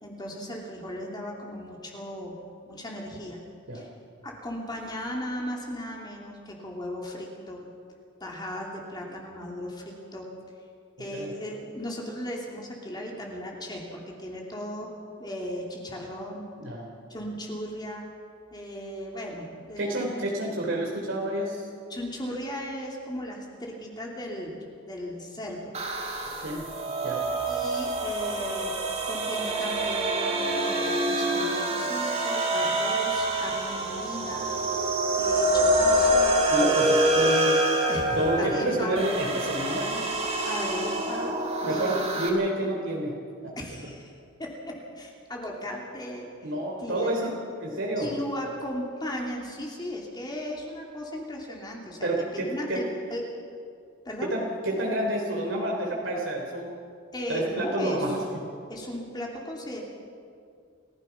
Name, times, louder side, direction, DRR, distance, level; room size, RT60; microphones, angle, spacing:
voice 1, 0.0-2.4 2.7-3.4 3.7-3.9 4.2-7.6 8.2-10.3 11.0-14.9 15.2-16.5 17.1-18.1 18.5-19.8 21.9-25.8 27.4-28.7 29.0-34.5 35.2-36.4 37.9-39.0 40.4-41.4 41.7-42.2 43.6-44.1 44.4-46.3 46.8-47.3 48.0-53.2 54.0-54.3 57.1-58.0 58.7-59.8, equal, 20° left, -1 dB, 3.0 m, -36 dB
voice 2, 16.6-16.9 19.8-21.7 26.4-26.7 27.0-27.2 36.5-37.6 38.2-40.0 41.6-43.5 46.4-48.1 52.0-52.8 54.2-56.7 57.3-58.2, right 1 dB, 75° right, -2 dB, 3.3 m, -29 dB
sound 1, 25.7-42.3, right 1 dB, 35° right, 3.0 m, -26 dB
28.5 x 16.5 x 5.8 m, 2.3 s
head